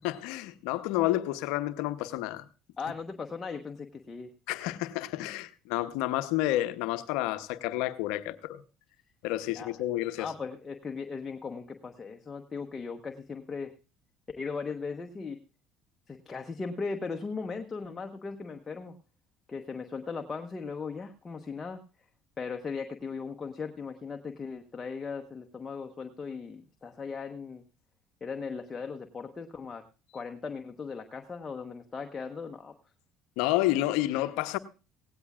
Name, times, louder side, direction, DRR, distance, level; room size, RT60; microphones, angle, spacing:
voice 1, 0.0-2.4 4.5-8.6 9.2-10.3 33.4-34.6, left 15 dB, 75° left, 0.8 m, -30 dB
voice 2, 2.8-4.3 9.5-9.7 10.2-13.7 14.4-15.4 16.1-18.9 19.5-21.8 22.4-27.6 28.2-29.8 30.1-32.7, left 5 dB, 30° left, 1.1 m, -38 dB
17.0 x 16.5 x 2.4 m
hypercardioid pair, 70°, 0 cm